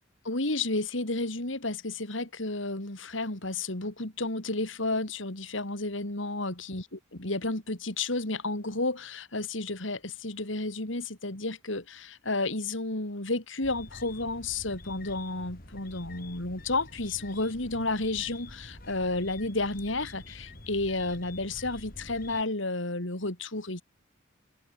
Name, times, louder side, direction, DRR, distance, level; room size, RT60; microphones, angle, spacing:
voice 1, 0.3-6.8 7.1-23.8, left 2 dB, 75° left, 3.4 m, -32 dB
sound 1, 13.6-22.4, left 2 dB, 45° left, 5.5 m, -47 dB
head